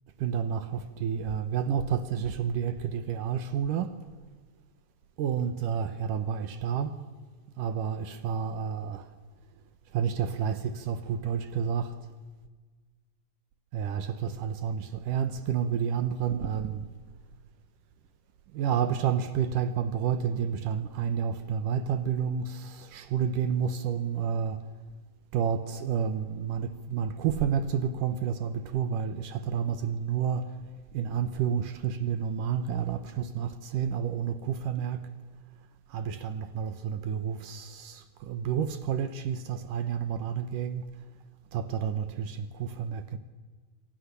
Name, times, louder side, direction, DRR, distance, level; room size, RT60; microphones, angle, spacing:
voice 1, 0.2-3.9 5.2-6.9 7.6-9.1 9.9-11.9 13.7-16.8 18.5-24.6 25.3-30.5 30.9-35.0 35.9-40.8 41.5-43.2, right 8 dB, 75° right, 1.9 m, -30 dB
28.0 x 24.5 x 6.9 m
omnidirectional pair, 5.2 m